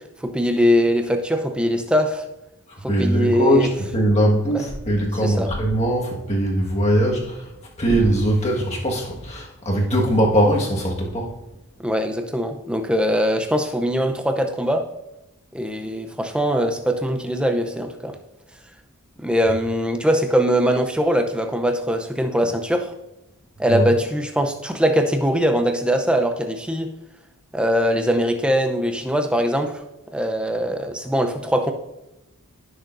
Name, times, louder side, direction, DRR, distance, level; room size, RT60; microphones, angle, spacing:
voice 1, 0.2-2.2 2.8-3.7 4.5-4.6 5.2-5.5 11.8-14.9 15.5-18.2 19.2-22.9 23.6-26.9 27.5-29.8 30.1-31.7, equal, 5° right, 5 dB, 0.6 m, -21 dB
voice 2, 2.9-7.5 7.8-11.3 23.7-23.9, equal, 30° left, -2 dB, 1.6 m, -20 dB
16.5 x 6.6 x 2.6 m, 0.93 s
head